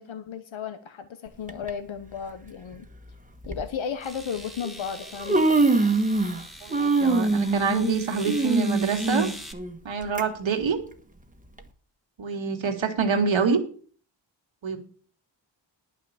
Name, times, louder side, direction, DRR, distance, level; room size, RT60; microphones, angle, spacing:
voice 1, 0.0-2.9 3.5-5.4, left 7 dB, 90° left, 9 dB, 1.0 m, -34 dB
Human voice, 1.5-1.7 2.7-2.8 3.4-3.6 4.6-4.7 5.0-6.4 6.7-10.2 10.6-10.7 11.6-11.7, right 3 dB, 15° right, 1.4 m, -23 dB
sound 1, 3.1-3.2 4.0-9.5, equal, ahead, 1.9 m, -42 dB
voice 2, 6.6-9.3 9.8-10.8 12.2-13.6 14.6-14.8, right 5 dB, 85° right, 5 dB, 2.1 m, -26 dB
11.0 x 6.0 x 8.7 m, 0.44 s
wide cardioid pair, 80°, 45 cm